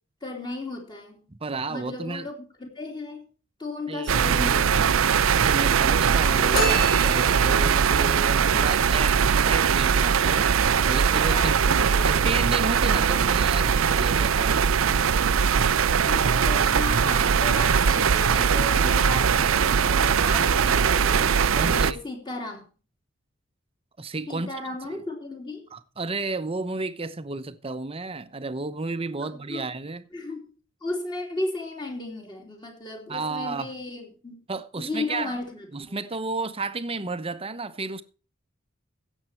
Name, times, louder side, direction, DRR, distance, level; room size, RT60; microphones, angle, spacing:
voice 1, 0.2-1.2 1.7-2.3 2.6-3.3 3.6-5.2 11.1-12.4 16.1-22.7 24.3-25.7 29.2-29.7 30.1-30.5 30.8-34.4 34.8-35.9, left 2 dB, 20° left, 3.2 m, -35 dB
voice 2, 1.3-2.3 3.9-4.1 5.4-10.5 10.8-11.6 12.0-14.7 21.5-22.0 24.0-24.5 24.8-25.0 25.7-30.0 33.1-33.7 34.5-35.3 35.7-38.0, right 3 dB, 30° right, 0.8 m, -32 dB
sound 1, 4.1-21.9, right 7 dB, 85° right, 0.5 m, -21 dB
sound 2, 6.5-7.8, right 1 dB, 50° left, 4.0 m, -28 dB
16.0 x 7.3 x 4.5 m
head